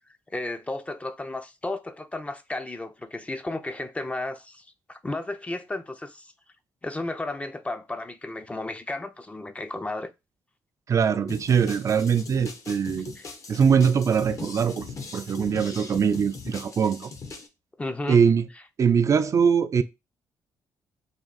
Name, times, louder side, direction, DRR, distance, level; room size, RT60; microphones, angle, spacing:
voice 1, 0.3-6.3 6.8-10.1 13.2-13.3 17.8-18.2, left 2 dB, 15° left, 0.4 m, -33 dB
voice 2, 10.9-13.1 13.5-17.1 18.1-18.5 18.8-19.8, right 6 dB, 45° right, 0.3 m, -22 dB
sound 1, 11.3-17.5, left 4 dB, 45° left, 0.8 m, -40 dB
3.6 x 2.3 x 3.9 m
cardioid pair, 85°, 8 cm